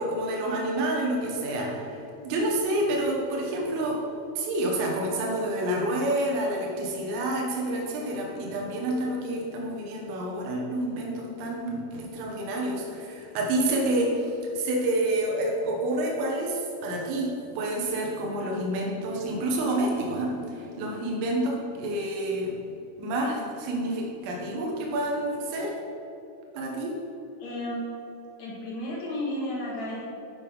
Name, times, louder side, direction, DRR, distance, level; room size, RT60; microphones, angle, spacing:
voice 1, 0.0-4.0 4.4-22.5 23.0-25.7 26.5-27.0, right 1 dB, 85° right, -2 dB, 3.9 m, -28 dB
voice 2, 27.4-27.8 28.4-30.0, left 1 dB, 50° left, -5 dB, 2.4 m, -33 dB
9.4 x 5.7 x 5.4 m, 2.9 s
omnidirectional pair, 5.7 m